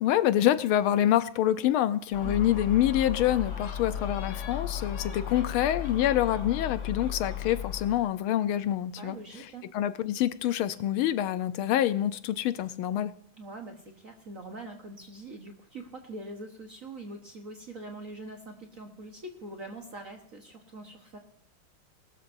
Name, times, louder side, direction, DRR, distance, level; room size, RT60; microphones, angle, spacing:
voice 1, 0.0-9.5 9.7-13.1, left 12 dB, 85° left, 13 dB, 1.6 m, -26 dB
Gull seagull, 2.1-8.0, left 8 dB, 55° left, 2.2 m, -35 dB
voice 2, 9.0-9.6 13.4-21.2, right 2 dB, 45° right, 2 dB, 1.5 m, -43 dB
20.0 x 13.0 x 2.7 m, 0.67 s
omnidirectional pair, 2.3 m